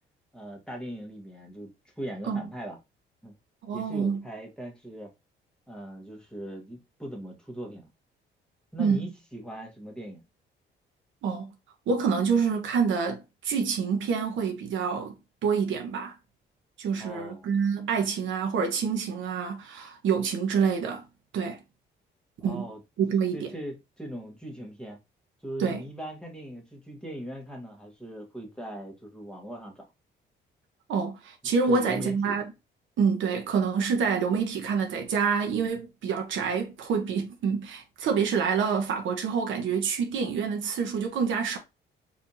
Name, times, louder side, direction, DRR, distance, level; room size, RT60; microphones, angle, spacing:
voice 1, 0.3-2.8 3.2-3.4 3.7-5.1 5.7-7.9 8.7-10.2 17.0-17.5 22.4-22.8 23.3-25.0 25.4-29.9 31.4-32.4, right 1 dB, 5° left, 1.6 m, -40 dB
voice 2, 3.7-4.2 8.8-9.0 11.2-11.5 11.9-15.1 15.4-16.1 16.8-21.0 21.3-21.6 22.4-22.7 23.0-23.5 25.6-25.8 30.9-32.5 33.0-41.6, right 6 dB, 80° right, 1.2 m, -27 dB
4.1 x 3.6 x 2.8 m
cardioid pair, 90°, 20 cm